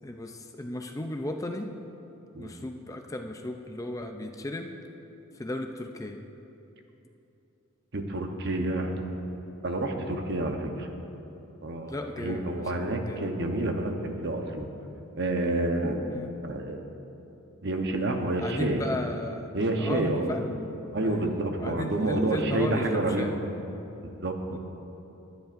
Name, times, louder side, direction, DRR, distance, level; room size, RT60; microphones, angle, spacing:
voice 1, 0.0-1.7 2.4-4.7 5.3-6.2 11.9-13.3 16.1-16.3 18.4-19.5 19.8-23.3 24.5-24.6, left 1 dB, 15° left, 4 dB, 0.4 m, -35 dB
voice 2, 7.9-9.1 9.6-10.9 11.6-14.7 15.2-16.0 16.4-16.8 17.6-18.8 19.5-20.3 20.9-23.4 24.0-24.6, right 2 dB, 55° right, 4 dB, 0.9 m, -29 dB
19.5 x 10.5 x 2.6 m, 3.0 s
head